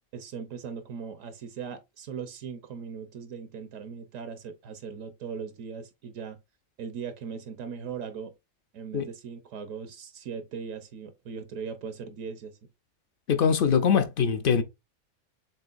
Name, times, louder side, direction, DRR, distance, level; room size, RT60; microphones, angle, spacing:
voice 1, 0.1-6.4 6.8-8.3 8.7-12.6, right 6 dB, 80° right, 1.2 m, -39 dB
voice 2, 13.3-14.6, left 7 dB, 55° left, 0.6 m, -22 dB
6.7 x 3.1 x 2.5 m
omnidirectional pair, 1.4 m